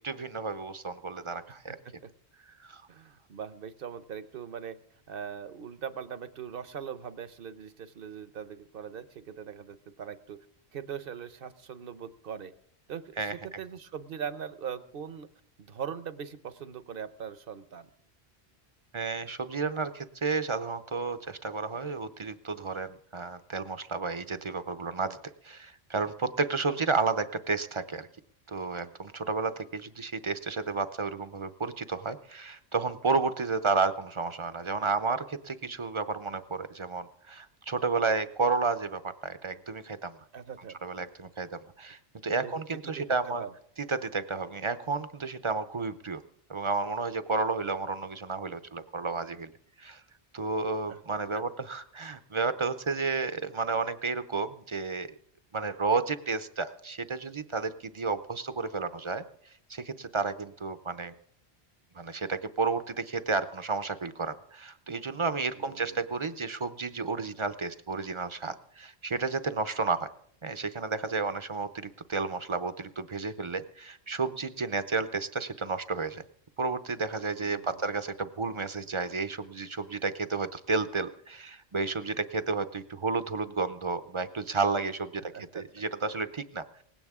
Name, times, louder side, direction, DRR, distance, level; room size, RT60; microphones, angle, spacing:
voice 1, 0.0-1.8 2.6-2.8 13.2-13.3 18.9-25.2 25.4-28.1 28.5-40.1 40.8-43.4 43.9-46.2 46.5-49.5 49.8-50.0 50.3-55.2 55.5-59.2 59.7-61.1 61.9-70.1 70.4-76.2 76.6-86.8, right 4 dB, 35° right, 12 dB, 0.6 m, -32 dB
voice 2, 1.5-2.1 2.9-4.8 5.1-10.5 10.7-12.5 12.9-15.3 15.6-17.9 40.3-40.8 42.4-43.5 50.9-51.0 51.3-51.4 65.5-66.0 77.4-77.8 85.3-85.6, right 7 dB, 60° right, 13 dB, 1.0 m, -41 dB
18.5 x 16.0 x 3.6 m, 0.64 s
omnidirectional pair, 1.1 m